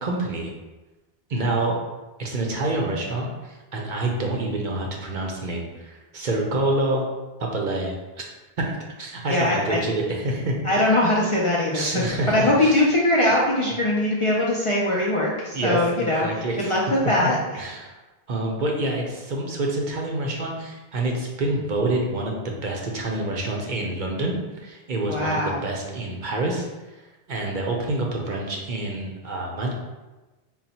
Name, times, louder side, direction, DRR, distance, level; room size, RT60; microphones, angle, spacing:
voice 1, 0.0-0.5 1.3-1.8 2.2-7.1 7.4-7.9 8.6-8.7 9.0-10.5 11.7-12.9 15.5-16.8 17.2-17.9 18.3-26.7 27.0-29.7, right 2 dB, 55° right, 0 dB, 0.7 m, -27 dB
voice 2, 9.3-9.8 10.6-17.4 25.1-25.6, left 1 dB, 40° left, -5 dB, 0.5 m, -22 dB
3.9 x 2.1 x 4.1 m, 1.1 s
omnidirectional pair, 1.0 m